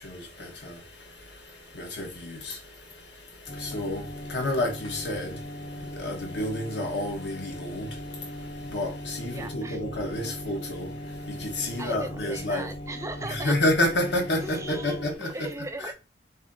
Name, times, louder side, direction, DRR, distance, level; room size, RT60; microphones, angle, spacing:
voice 1, 0.0-0.8 1.7-2.6 3.6-4.0 4.3-5.3 5.9-7.9 8.7-10.9 11.3-12.7 13.2-15.5 15.8-15.9, left 1 dB, 75° left, 1.2 m, -29 dB
sound 1, 3.5-15.1, equal, 25° left, 0.6 m, -39 dB
voice 2, 9.3-9.8 10.2-10.7 11.8-13.6 14.4-15.9, right 2 dB, 15° right, 0.5 m, -38 dB
6.0 x 2.8 x 2.6 m
head